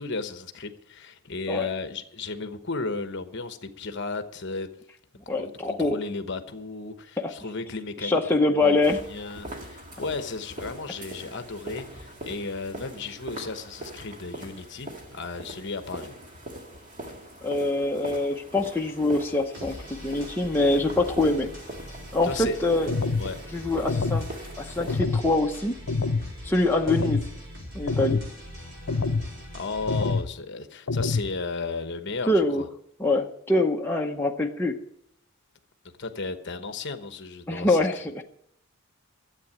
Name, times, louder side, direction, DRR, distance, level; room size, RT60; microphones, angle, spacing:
voice 1, 0.0-4.7 5.3-8.2 8.5-16.1 22.2-22.6 23.2-23.4 29.5-32.3 32.6-32.7 36.0-37.9, left 3 dB, 55° left, 8 dB, 1.1 m, -34 dB
voice 2, 5.3-6.0 7.2-7.3 8.0-9.0 17.4-21.5 22.1-22.9 23.5-24.3 24.6-25.7 26.4-27.2 27.7-28.2 32.3-32.6 33.0-34.8 37.5-38.2, left 2 dB, 10° left, 0 dB, 0.8 m, -24 dB
sound 1, 8.8-25.0, right 1 dB, 35° right, 2.1 m, -42 dB
sound 2, 19.5-30.2, equal, 50° right, 5.0 m, -42 dB
sound 3, 22.9-23.3 23.9-24.3 24.9-25.3 25.9-26.3 26.9-27.3 27.9-28.3 28.9-29.3 29.9-30.3 30.9-31.3, left 4 dB, 75° left, 0.8 m, -26 dB
13.0 x 8.2 x 8.7 m, 0.71 s
head